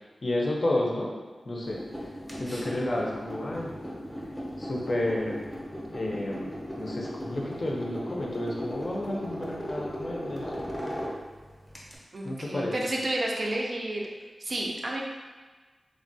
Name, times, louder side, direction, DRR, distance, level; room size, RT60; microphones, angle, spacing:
voice 1, 0.2-1.1 1.5-1.9 2.4-3.7 4.6-5.4 5.9-10.6 12.2-12.8, left 1 dB, 45° left, -2 dB, 0.5 m, -31 dB
sound 1, 1.6-12.0, equal, 5° right, 0.6 m, -37 dB
voice 2, 12.1-14.0 14.4-15.0, right 1 dB, 55° right, -2 dB, 0.4 m, -31 dB
3.3 x 2.2 x 2.6 m, 1.4 s
wide cardioid pair, 115°, 0 cm